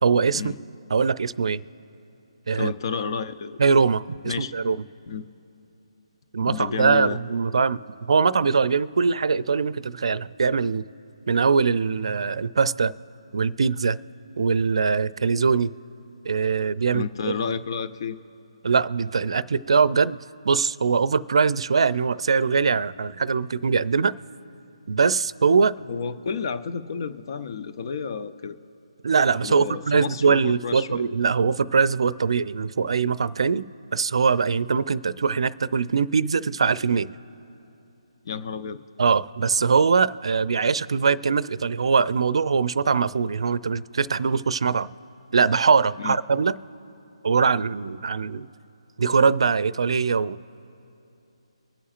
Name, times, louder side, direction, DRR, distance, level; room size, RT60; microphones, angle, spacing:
voice 1, 0.0-0.5 0.9-1.6 2.5-2.7 3.6-4.8 6.3-10.8 11.3-12.9 13.3-14.0 14.4-15.7 16.2-17.1 18.6-20.2 20.4-24.1 24.9-25.7 29.0-33.7 33.9-37.1 39.0-44.9 45.3-46.5 47.2-48.5 49.0-50.4, right 5 dB, 65° right, 17 dB, 0.5 m, -22 dB
voice 2, 2.5-3.6 4.3-4.5 5.1-5.3 6.4-7.2 16.9-18.2 25.9-28.6 29.4-31.0 38.2-38.8 46.0-46.2, left 5 dB, 45° left, 11 dB, 0.6 m, -31 dB
24.5 x 8.4 x 2.5 m, 2.9 s
figure-of-eight pair, 150°, 3 cm